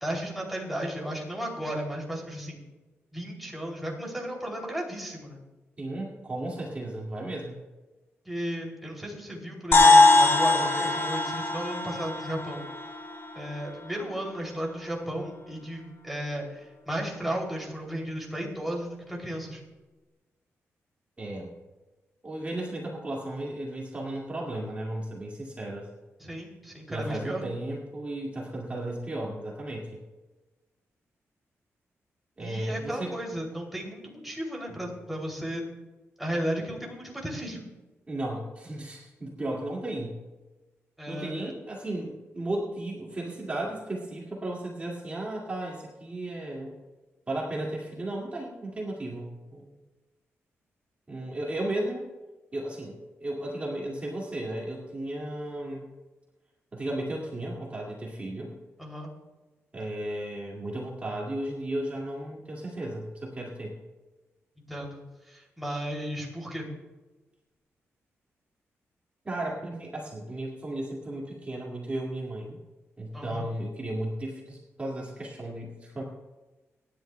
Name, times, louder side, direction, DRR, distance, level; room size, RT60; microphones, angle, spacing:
voice 1, 0.0-2.6 3.1-5.4 8.2-12.6 13.3-19.6 26.2-27.4 32.4-35.6 36.2-37.6 41.0-41.5 58.8-59.1 64.7-66.7 73.1-73.4, right 1 dB, ahead, -2 dB, 2.9 m, -34 dB
voice 2, 5.8-7.6 21.2-21.5 22.2-25.9 26.9-30.0 32.4-33.2 38.1-40.2 41.1-46.7 47.3-49.8 51.1-52.1 52.5-55.9 56.7-58.5 59.7-63.7 69.2-72.6 73.0-76.0, right 1 dB, 25° right, -4 dB, 2.1 m, -34 dB
sound 1, 9.7-14.3, left 2 dB, 55° left, 3.5 m, -22 dB
25.0 x 10.5 x 2.3 m, 1.2 s
wide cardioid pair, 115°, 5 cm